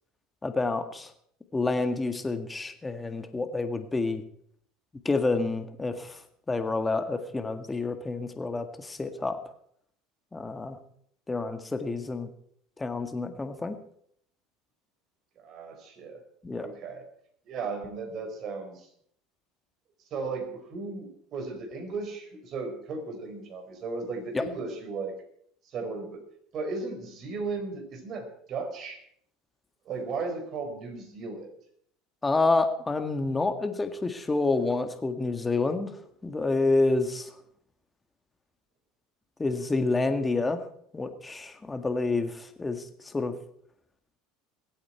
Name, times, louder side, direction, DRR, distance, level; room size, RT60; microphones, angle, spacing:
voice 1, 0.4-1.1 1.5-4.2 5.1-6.2 6.5-9.4 10.3-10.8 11.3-12.3 12.8-13.8 16.4-16.7 24.3-24.4 32.2-35.9 36.2-37.3 39.4-40.6 40.9-43.3, left 3 dB, 15° left, 7 dB, 1.8 m, -28 dB
voice 2, 15.4-16.2 16.5-17.0 17.5-18.9 20.1-25.1 25.7-26.2 26.5-29.0 29.8-31.5, right 4 dB, 50° right, 4 dB, 4.8 m, -35 dB
22.5 x 8.7 x 4.5 m, 0.66 s
supercardioid pair, 90°, 0 cm